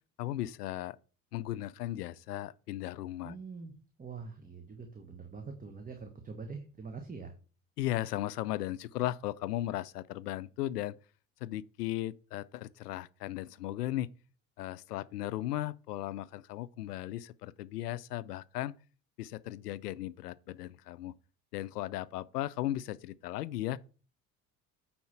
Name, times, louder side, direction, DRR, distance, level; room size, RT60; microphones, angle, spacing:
voice 1, 0.2-1.0 1.3-3.4 7.8-11.0 11.4-14.1 14.6-18.7 19.2-21.1 21.5-23.8, left 14 dB, 75° left, 0.6 m, -36 dB
voice 2, 3.2-7.3, right 4 dB, 15° right, 1.3 m, -44 dB
9.2 x 4.3 x 5.6 m
figure-of-eight pair, 60°, 47 cm